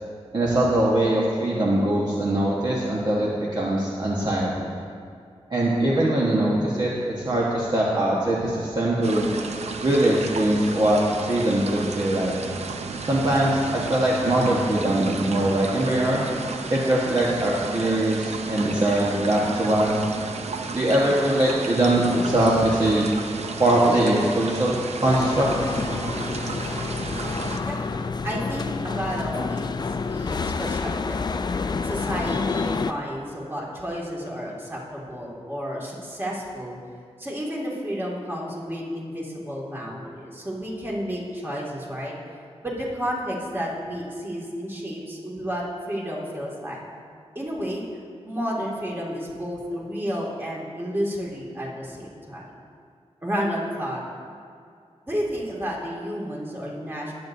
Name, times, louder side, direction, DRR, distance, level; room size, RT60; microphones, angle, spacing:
voice 1, 0.3-4.7 5.5-9.3 9.8-11.0 11.3-12.3 13.0-16.2 16.7-20.0 20.7-23.1 23.6-25.5, right 1 dB, 40° right, -5 dB, 1.3 m, -22 dB
sound 1, 9.0-27.6, right 4 dB, 80° right, 0.7 m, -33 dB
sound 2, 25.0-32.9, left 4 dB, 40° left, 0.4 m, -28 dB
voice 2, 28.2-31.2 31.8-36.8 37.2-42.1 42.6-46.8 47.3-47.8 48.3-52.5 53.2-54.0 55.1-57.1, equal, 20° right, -5 dB, 2.3 m, -31 dB
20.0 x 7.9 x 2.7 m, 2.3 s
wide cardioid pair, 110°, 11 cm